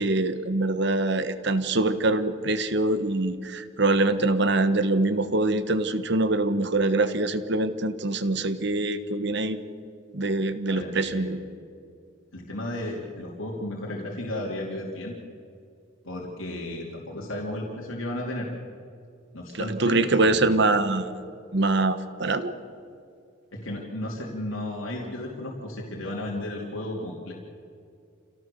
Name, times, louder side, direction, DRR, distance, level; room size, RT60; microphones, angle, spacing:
voice 1, 0.0-9.6 10.1-11.4 19.6-21.1 21.5-22.5, right 2 dB, 55° right, 11 dB, 1.2 m, -24 dB
voice 2, 10.7-11.3 12.3-15.1 16.0-18.5 19.3-20.6 23.5-27.3, left 1 dB, 80° left, -2 dB, 3.1 m, -34 dB
27.0 x 17.0 x 6.9 m, 2.3 s
head